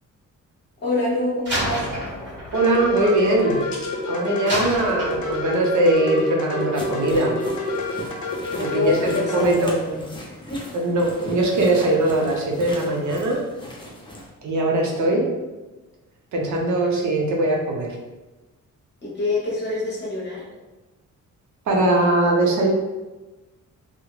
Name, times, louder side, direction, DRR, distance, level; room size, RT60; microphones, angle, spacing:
voice 1, 0.8-1.9 8.5-10.0 10.3-10.6 19.0-20.4, left 2 dB, 35° left, -6 dB, 0.9 m, -26 dB
Slam, 1.5-3.9 4.5-5.7, equal, 35° right, 1.2 m, -30 dB
sound 1, 2.5-9.4, left 2 dB, 65° left, 0.6 m, -28 dB
voice 2, 2.5-7.4 8.5-9.8 10.7-13.4 14.4-15.3 16.3-18.0 21.7-22.7, right 2 dB, 65° right, 0 dB, 0.6 m, -21 dB
sound 2, 6.7-14.3, left 1 dB, 15° left, 0.4 m, -39 dB
2.4 x 2.1 x 3.0 m, 1.1 s
wide cardioid pair, 150°, 32 cm